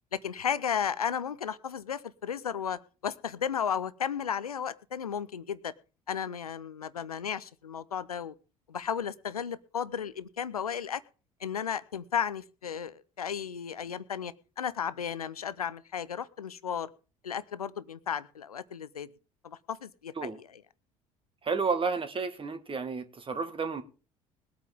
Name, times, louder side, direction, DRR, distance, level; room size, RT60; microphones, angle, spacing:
voice 1, 0.1-5.7 6.1-8.3 8.7-11.0 11.4-16.9 17.2-19.1 19.4-20.6, left 8 dB, 85° left, 0.7 m, -34 dB
voice 2, 21.4-23.8, right 4 dB, 30° right, 1.9 m, -31 dB
21.0 x 8.6 x 3.7 m
figure-of-eight pair, 55°, 18 cm